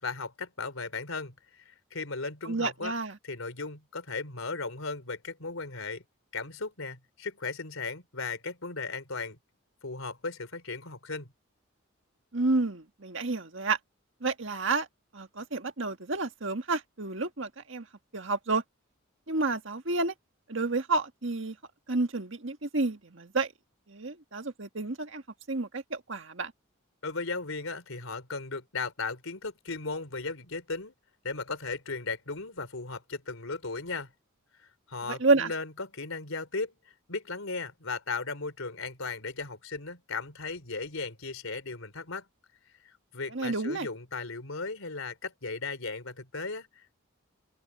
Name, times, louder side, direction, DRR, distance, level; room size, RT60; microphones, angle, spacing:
voice 1, 0.0-1.3 1.7-2.9 3.2-6.0 6.3-9.4 9.8-11.3 27.0-30.9 31.2-34.1 34.6-36.8 37.1-42.3 42.8-47.0, left 4 dB, 85° left, 3.7 m, -36 dB
voice 2, 2.4-3.2 12.3-13.8 14.2-14.9 15.1-17.9 18.1-18.6 19.3-20.1 20.5-21.6 21.9-23.5 23.9-25.2 25.5-26.5 35.1-35.5 43.3-43.9, right 3 dB, 65° right, 1.8 m, -30 dB
open air
head